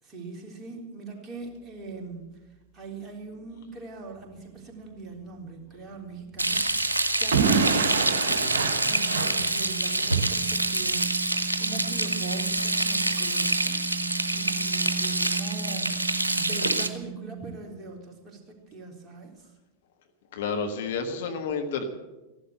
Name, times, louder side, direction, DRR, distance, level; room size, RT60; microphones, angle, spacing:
voice 1, 0.0-2.2 2.7-11.2 11.6-13.8 14.3-19.5, right 3 dB, 20° right, 0 dB, 3.7 m, -41 dB
sound 1, 4.1-7.5 8.0-17.6, right 6 dB, 40° right, 1.7 m, -39 dB
Frying (food), 6.4-16.9, right 2 dB, 80° right, 1.2 m, -26 dB
Explosion / Shatter, 7.3-10.1, right 5 dB, 65° right, 1.3 m, -26 dB
voice 2, 20.3-21.8, left 5 dB, 55° left, 5 dB, 1.5 m, -30 dB
15.5 x 11.5 x 7.8 m, 1.1 s
figure-of-eight pair, 90°, 0 cm